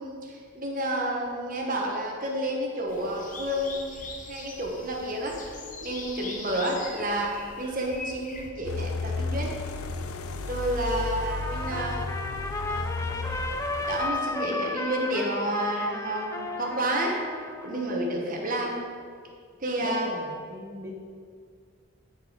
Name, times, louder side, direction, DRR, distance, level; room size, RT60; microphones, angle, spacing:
voice 1, 0.0-5.4 5.8-9.5 10.5-12.0 12.7-13.4 13.9-17.2 17.6-18.7 19.6-20.1, right 1 dB, 40° right, -1 dB, 1.2 m, -30 dB
sound 1, 2.9-8.5, left 3 dB, 35° left, 0.8 m, -42 dB
sound 2, 8.6-14.1, left 3 dB, 80° left, 0.5 m, -33 dB
Trumpet, 11.2-17.9, left 2 dB, 15° left, 0.4 m, -33 dB
voice 2, 19.8-20.9, equal, 15° right, -4 dB, 1.0 m, -38 dB
10.5 x 4.6 x 5.1 m, 2.1 s
head